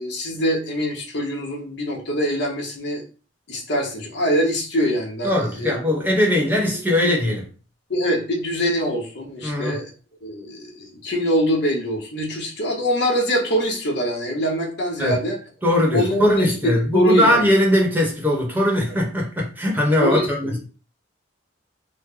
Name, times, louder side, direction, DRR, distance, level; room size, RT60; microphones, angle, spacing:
voice 1, 0.0-3.0 3.5-5.7 7.9-9.9 10.2-15.4 15.9-17.5 20.0-20.6, equal, 65° left, 1.0 m, -24 dB
voice 2, 5.2-7.5 9.4-9.8 15.0-15.2 15.6-20.6, left 1 dB, 10° right, 0.9 m, -20 dB
3.1 x 2.1 x 3.7 m
head